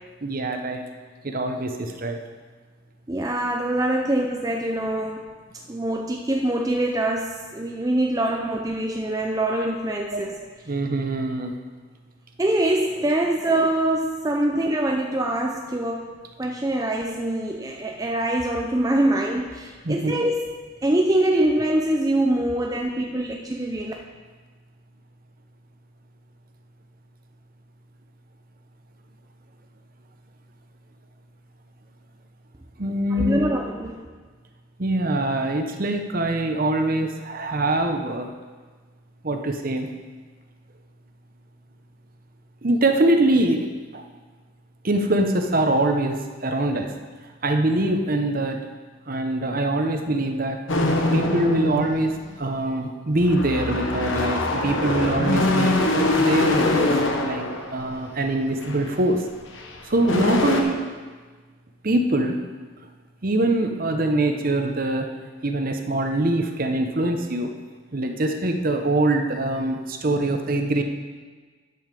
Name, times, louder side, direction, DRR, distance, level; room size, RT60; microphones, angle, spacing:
voice 1, 0.2-0.8 1.2-2.2 10.1-10.2 10.7-11.5 19.8-20.1 21.4-21.5 32.8-33.4 34.8-38.3 39.2-39.9 42.6-43.7 43.9-44.0 44.8-46.9 47.4-48.6 49.1-50.6 51.1-52.1 52.4-55.8 56.1-57.0 57.2-57.5 57.7-59.2 59.8-60.8 61.8-62.4 63.2-65.1 65.4-67.5 67.9-70.8, right 1 dB, 40° right, 5 dB, 0.8 m, -23 dB
voice 2, 3.1-5.3 5.7-10.3 12.4-16.1 16.4-20.5 20.8-23.9 33.2-33.9, right 1 dB, 15° right, 1 dB, 0.5 m, -24 dB
sound 1, 50.7-52.3 53.2-58.0 58.6-58.9 59.6-59.7 59.9-60.6, left 2 dB, 60° left, 1.1 m, -23 dB
10.5 x 5.5 x 6.8 m, 1.4 s
head